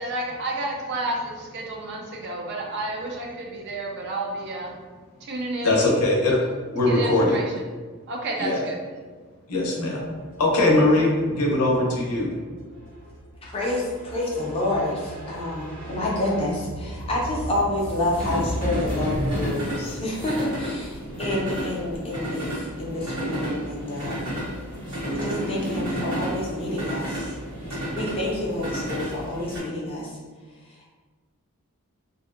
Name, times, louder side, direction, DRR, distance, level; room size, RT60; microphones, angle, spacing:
voice 1, 0.0-4.7 5.3-5.8 6.9-7.4 8.1-8.8, right 2 dB, 50° right, 0 dB, 0.4 m, -30 dB
voice 2, 5.6-6.4 6.7-7.4 8.4-8.7 9.5-10.0 10.4-12.3, left 2 dB, 85° left, -1 dB, 0.6 m, -21 dB
sound 1, 10.1-29.6, equal, 80° right, 1.2 m, -32 dB
voice 3, 13.4-24.3 25.1-27.3 27.9-30.2 30.7-30.9, left 1 dB, 25° left, -4 dB, 0.4 m, -28 dB
2.5 x 2.0 x 2.4 m, 1.4 s
head